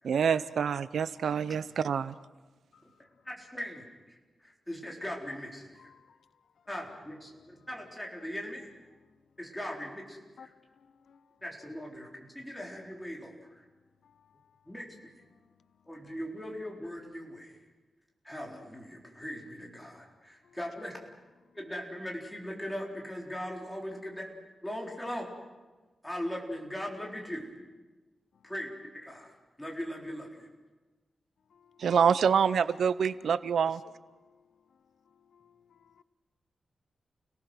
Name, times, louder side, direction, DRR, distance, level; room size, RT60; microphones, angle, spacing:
voice 1, 0.0-2.1 31.8-33.8, right 7 dB, 85° right, 0.6 m, -26 dB
voice 2, 3.3-5.9 6.7-8.7 9.4-10.5 11.4-13.3 14.7-14.9 15.9-17.6 18.2-20.9 21.5-24.3 24.6-25.3 26.0-27.5 28.4-30.5, equal, 5° left, 4.1 m, -40 dB
voice 3, 31.5-31.8 34.2-34.4 35.3-36.0, left 7 dB, 85° left, 0.6 m, -58 dB
30.0 x 18.5 x 6.3 m
wide cardioid pair, 140°, 0 cm